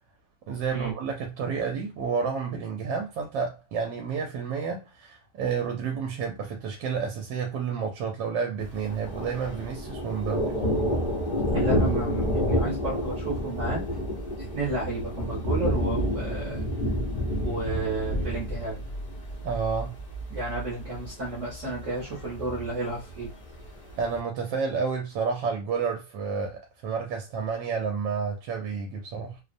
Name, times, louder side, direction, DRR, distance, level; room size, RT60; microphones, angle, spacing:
voice 1, 0.5-10.6 19.4-20.0 24.0-29.4, right 5 dB, 75° right, 1.2 m, -30 dB
Thunder, 8.6-24.2, equal, 55° left, 0.5 m, -30 dB
voice 2, 11.5-14.0 14.4-16.6 17.4-18.7 20.3-23.3, right 2 dB, 50° right, 1.0 m, -32 dB
3.1 x 2.0 x 2.5 m
omnidirectional pair, 2.0 m